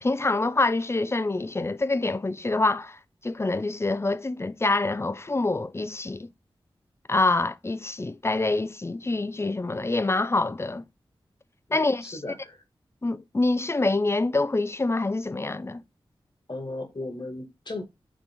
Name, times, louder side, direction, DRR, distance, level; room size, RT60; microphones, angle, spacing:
voice 1, 0.0-6.3 7.1-10.8 11.7-12.2 13.0-15.8, left 2 dB, 25° left, 0.6 m, -26 dB
voice 2, 11.7-12.6 16.5-17.8, left 2 dB, 50° left, 2.1 m, -36 dB
9.1 x 3.5 x 3.6 m
cardioid pair, 55°, 10 cm